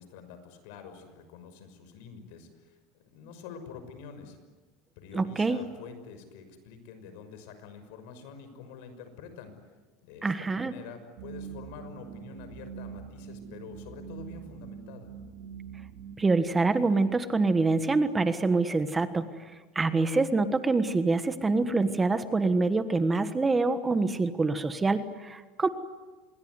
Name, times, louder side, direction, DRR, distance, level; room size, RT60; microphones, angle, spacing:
voice 1, 0.0-4.4 5.0-9.5 10.0-15.1, left 6 dB, 75° left, 9 dB, 6.0 m, -47 dB
voice 2, 5.1-5.6 10.2-10.7 16.2-25.7, right 3 dB, 15° right, 10 dB, 1.4 m, -26 dB
sound 1, 11.2-16.2, right 8 dB, 85° right, 3.1 m, -43 dB
26.5 x 22.5 x 9.8 m, 1.3 s
supercardioid pair, 135°, 0 cm